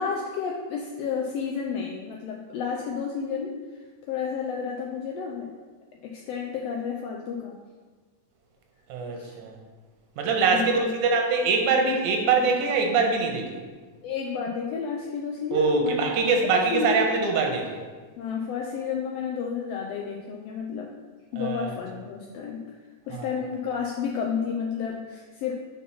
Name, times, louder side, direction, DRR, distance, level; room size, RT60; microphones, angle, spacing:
voice 1, 0.0-3.6 4.1-5.5 6.0-7.6 9.2-9.3 10.5-10.9 14.0-16.1 16.4-17.0 18.2-20.9 21.3-22.6 23.1-25.5, left 6 dB, 90° left, 0 dB, 1.4 m, -31 dB
voice 2, 8.9-9.5 10.2-13.6 15.5-17.8 21.4-21.7 23.1-23.3, right 4 dB, 85° right, 3 dB, 2.4 m, -23 dB
5.6 x 4.6 x 5.6 m, 1.4 s
omnidirectional pair, 3.4 m